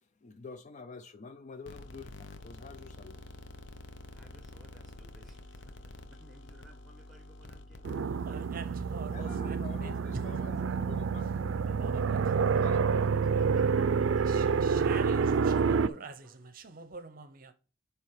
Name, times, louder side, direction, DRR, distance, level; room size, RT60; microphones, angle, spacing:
voice 1, 0.2-3.3 9.1-11.7 12.5-12.9, left 4 dB, 40° left, 0.4 m, -47 dB
sound 1, 1.7-8.5, left 2 dB, 65° left, 0.8 m, -48 dB
voice 2, 4.1-7.8 8.2-8.7 13.2-15.9 16.2-16.4, equal, ahead, 1.5 m, -59 dB
sound 2, 7.8-15.9, right 5 dB, 85° right, 0.4 m, -28 dB
voice 3, 8.0-10.4 11.2-11.3 11.8-12.6 14.2-17.5, right 4 dB, 45° right, 0.7 m, -45 dB
9.5 x 3.4 x 4.7 m
head